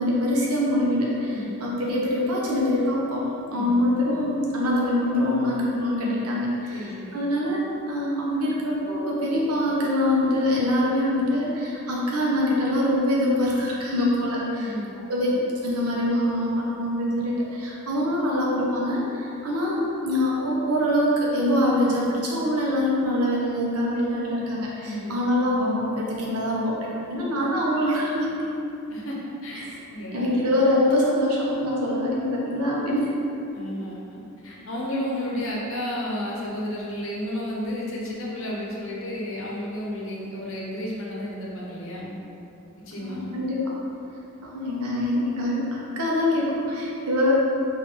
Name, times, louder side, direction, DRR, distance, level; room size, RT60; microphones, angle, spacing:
voice 1, 0.0-3.2 3.5-14.7 15.1-28.4 29.6-29.8 30.1-33.1 43.0-43.6 44.4-47.3, left 1 dB, 90° right, -4 dB, 0.8 m, -24 dB
voice 2, 1.3-1.6 3.5-3.8 6.7-7.2 14.5-14.9 24.8-25.2 28.9-30.3 33.5-42.2 42.8-43.4, left 1 dB, 60° left, -4 dB, 0.7 m, -32 dB
3.5 x 2.5 x 3.7 m, 2.7 s
head